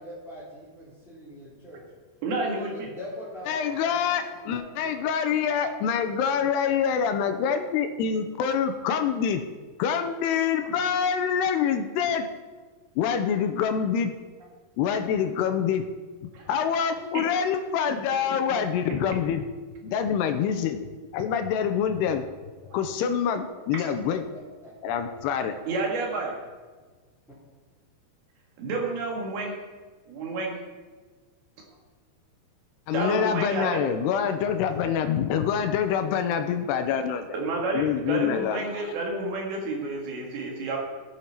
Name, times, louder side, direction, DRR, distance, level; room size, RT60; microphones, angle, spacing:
voice 1, 0.0-1.8 2.5-4.9 23.8-23.9 24.6-25.0, left 1 dB, ahead, -12 dB, 3.1 m, -42 dB
voice 2, 2.2-2.9 16.3-16.5 17.1-17.2 23.7-23.8 25.7-26.3 28.6-29.6 30.1-30.6 32.9-33.8 37.3-40.8, right 3 dB, 65° right, 0 dB, 3.4 m, -30 dB
voice 3, 3.5-9.4 9.8-12.3 13.0-14.2 14.8-15.8 16.2-19.4 19.8-20.8 21.1-22.2 22.7-24.2 24.8-25.6 32.9-37.3 37.7-38.8, left 7 dB, 80° left, 8 dB, 2.7 m, -26 dB
15.5 x 9.1 x 4.5 m, 1.4 s
omnidirectional pair, 5.1 m